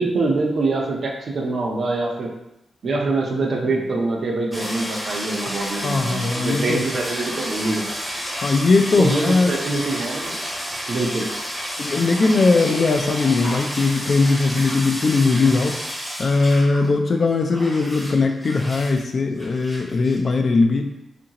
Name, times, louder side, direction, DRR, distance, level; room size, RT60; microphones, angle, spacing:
voice 1, 0.0-2.3 2.8-7.9 9.0-10.4 10.9-11.3, right 3 dB, 60° right, -1 dB, 0.5 m, -24 dB
sound 1, 4.5-16.9 17.2-19.0 19.4-20.2, equal, ahead, 0.7 m, -31 dB
voice 2, 5.8-6.8 8.4-9.5 11.8-15.8 16.2-20.9, left 3 dB, 50° left, 5 dB, 0.3 m, -19 dB
2.7 x 2.5 x 2.8 m, 0.87 s
cardioid pair, 100°, 0 cm